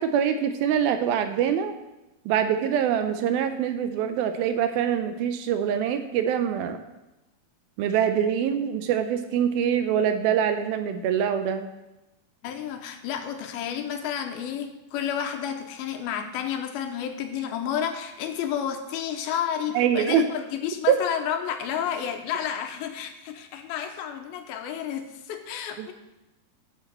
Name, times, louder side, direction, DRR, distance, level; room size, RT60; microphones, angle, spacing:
voice 1, 0.0-1.7 2.3-6.8 7.8-11.7 19.8-20.3 20.9-21.0 25.8-25.9, right 8 dB, 80° right, 9 dB, 2.3 m, -24 dB
voice 2, 12.4-25.9, left 8 dB, 80° left, 6 dB, 2.5 m, -31 dB
11.0 x 5.6 x 7.4 m, 0.99 s
omnidirectional pair, 4.5 m